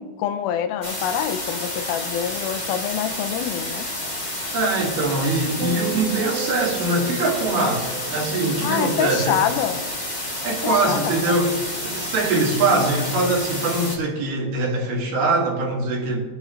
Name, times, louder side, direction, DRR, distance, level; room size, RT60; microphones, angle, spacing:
voice 1, 0.0-3.9 8.6-9.8 10.6-11.4, left 9 dB, 80° left, 9 dB, 2.5 m, -26 dB
sound 1, 0.8-14.0, left 1 dB, 25° left, 0.9 m, -30 dB
voice 2, 4.5-7.8 8.1-9.4 10.4-11.5 11.8-16.2, right 2 dB, 85° right, -2 dB, 4.1 m, -22 dB
sound 2, 5.6-10.0 10.3-10.7, right 8 dB, 25° right, 2.6 m, -35 dB
23.0 x 7.7 x 3.2 m, 1.4 s
omnidirectional pair, 4.3 m